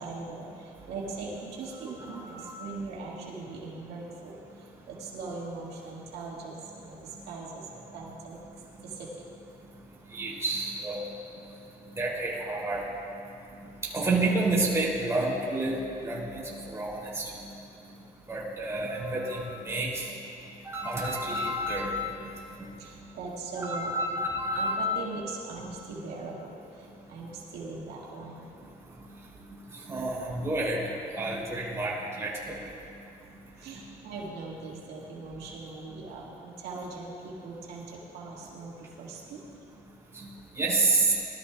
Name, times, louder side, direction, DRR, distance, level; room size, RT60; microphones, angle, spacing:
voice 1, 0.0-4.4 4.9-8.4 8.8-9.1 18.4-18.5 22.8-23.9 24.5-28.6 33.6-39.4, right 3 dB, 80° right, -4 dB, 1.9 m, -40 dB
voice 2, 2.1-2.5 10.1-11.0 12.0-12.8 13.9-17.0 18.3-20.0 20.6-22.3 23.6-25.1 29.9-30.8 31.2-32.3 40.2-40.3 40.6-41.1, right 2 dB, 15° right, -5 dB, 3.1 m, -29 dB
19.0 x 12.5 x 2.4 m, 2.7 s
cardioid pair, 110°, 17 cm